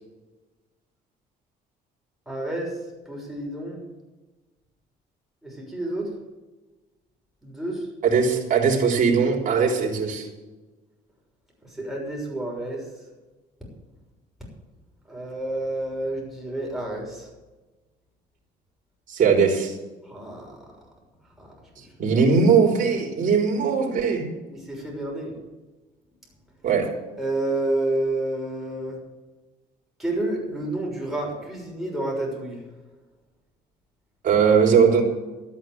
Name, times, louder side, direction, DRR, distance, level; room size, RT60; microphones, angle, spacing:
voice 1, 2.3-2.7 3.1-3.9 5.4-6.1 7.4-7.9 11.6-12.8 15.1-17.3 20.0-20.5 21.4-21.5 21.8-21.9 22.1-22.2 24.5-25.3 27.2-29.0 30.0-32.6, right 1 dB, ahead, -2 dB, 6.3 m, -29 dB
voice 2, 8.0-10.3 19.1-19.8 22.0-24.3 26.6-26.9 34.2-35.0, right 5 dB, 50° right, 0 dB, 3.8 m, -20 dB
12.5 x 9.3 x 7.9 m, 1.2 s
cardioid pair, 110°, 17 cm